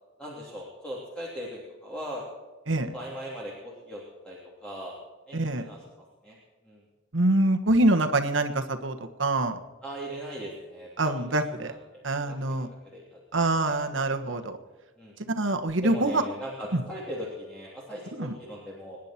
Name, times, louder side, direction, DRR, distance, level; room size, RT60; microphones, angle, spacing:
voice 1, 0.2-2.2 2.9-5.0 5.3-5.8 6.2-6.4 6.6-6.8 9.8-12.6 12.8-13.2 13.7-13.8 14.2-14.4 15.0-15.1 15.8-19.0, equal, 5° left, -5 dB, 3.1 m, -39 dB
voice 2, 5.3-5.7 7.1-9.6 11.0-11.7 12.0-12.7 13.3-14.6 15.4-16.2 16.7-16.8 18.2-18.3, right 2 dB, 75° right, 6 dB, 1.4 m, -25 dB
26.5 x 10.0 x 4.4 m, 1.3 s
head